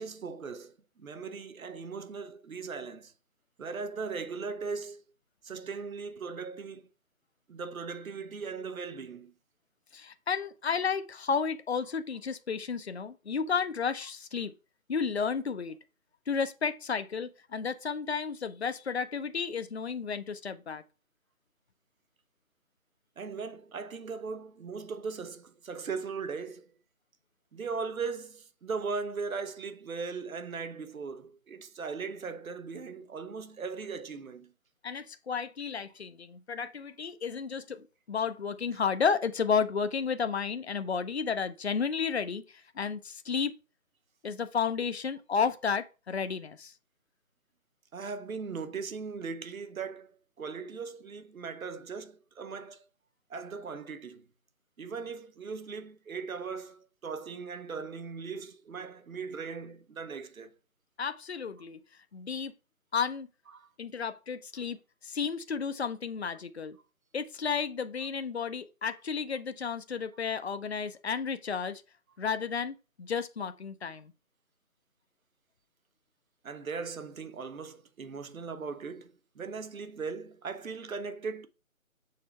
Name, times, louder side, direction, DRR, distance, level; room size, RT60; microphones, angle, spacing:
voice 1, 0.0-3.1 3.6-5.0 5.4-6.9 7.5-9.3 23.2-26.7 27.5-34.5 47.9-52.8 53.3-54.2 54.8-60.5 63.5-63.7 76.4-81.5, right 5 dB, 75° right, 0.9 m, -38 dB
voice 2, 9.9-14.5 14.9-15.8 16.3-20.8 34.8-43.5 44.2-46.7 61.0-61.8 62.1-62.5 62.9-63.3 63.8-64.8 65.0-66.8 67.1-71.8 72.2-74.1, left 6 dB, 50° left, 0.6 m, -32 dB
6.6 x 3.3 x 4.3 m
figure-of-eight pair, 165°, 42 cm